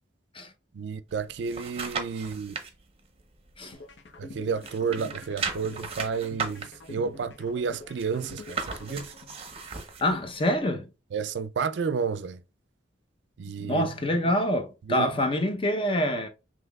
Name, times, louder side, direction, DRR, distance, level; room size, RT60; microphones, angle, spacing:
voice 1, 0.7-2.6 4.2-9.1 11.1-12.4 13.4-14.3 14.8-15.2, right 5 dB, 65° right, 0.4 m, -31 dB
sound 1, 1.1-2.7 3.2-4.3 4.6-10.1 10.6-10.7, right 5 dB, 30° right, 0.7 m, -36 dB
sound 2, 3.7-9.7, left 2 dB, 65° left, 0.7 m, -45 dB
voice 2, 10.0-10.9 13.6-16.3, equal, 30° left, 0.6 m, -26 dB
5.6 x 3.1 x 2.3 m
head